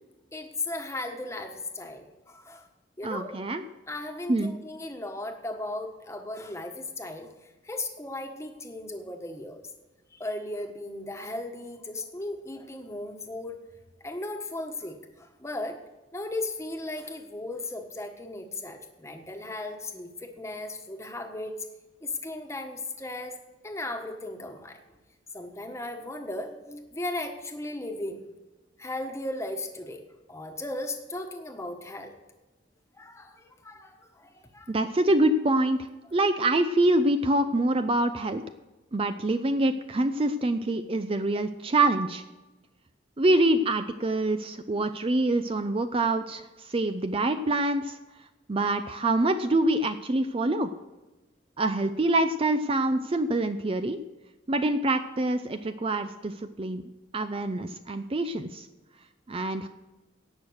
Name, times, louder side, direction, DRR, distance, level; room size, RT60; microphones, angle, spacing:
voice 1, 0.3-2.7 3.0-3.4 3.9-7.3 7.6-9.6 10.1-13.6 14.0-15.8 16.1-21.6 22.0-23.4 23.6-24.8 25.3-28.2 28.8-30.0 30.3-32.1 33.0-34.7, left 2 dB, 15° left, 4 dB, 1.3 m, -36 dB
voice 2, 3.0-3.6 4.3-4.5 34.7-38.4 38.9-42.2 43.2-48.0 48.5-50.7 51.6-54.0 54.5-56.8 57.1-58.7 59.3-59.7, right 2 dB, 30° right, 9 dB, 0.5 m, -25 dB
17.5 x 6.4 x 6.4 m, 1.1 s
head